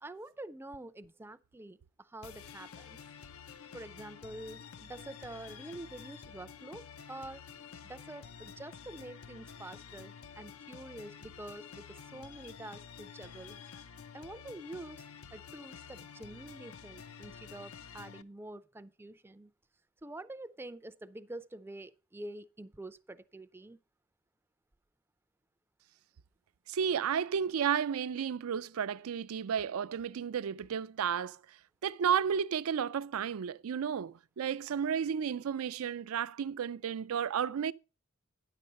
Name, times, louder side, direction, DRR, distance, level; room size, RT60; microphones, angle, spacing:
voice 1, 0.0-3.0 3.7-7.4 7.8-13.6 14.1-15.0 15.3-19.5 20.0-23.8, right 1 dB, 10° right, 0.4 m, -47 dB
sound 1, 2.2-18.2, left 7 dB, 80° left, 0.5 m, -50 dB
voice 2, 26.7-31.4 31.8-37.7, right 7 dB, 80° right, 0.4 m, -32 dB
9.8 x 6.7 x 5.3 m
head